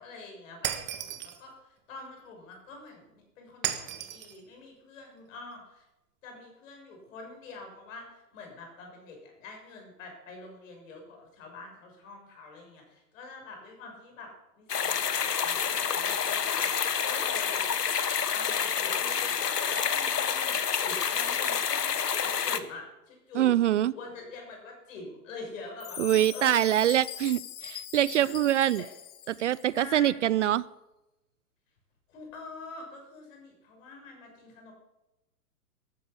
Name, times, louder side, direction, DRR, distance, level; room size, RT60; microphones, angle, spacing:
voice 1, 0.0-5.8 6.2-14.3 14.6-17.7 18.3-19.4 19.7-21.9 22.2-27.0 28.2-28.3 28.8-28.9 29.7-30.1 32.1-34.7, left 3 dB, 55° left, 2 dB, 6.8 m, -46 dB
Shatter, 0.6-1.4 3.6-4.4, right 11 dB, 25° right, 1.4 m, -34 dB
sound 1, 14.7-22.6, left 7 dB, 80° left, 1.3 m, -28 dB
voice 2, 23.4-23.9 26.0-28.8 29.3-30.6, right 12 dB, 50° right, 21 dB, 0.4 m, -24 dB
Chime, 25.8-29.8, left 10 dB, 20° left, 1.3 m, -42 dB
14.0 x 11.5 x 7.0 m, 0.98 s
figure-of-eight pair, 115°, 47 cm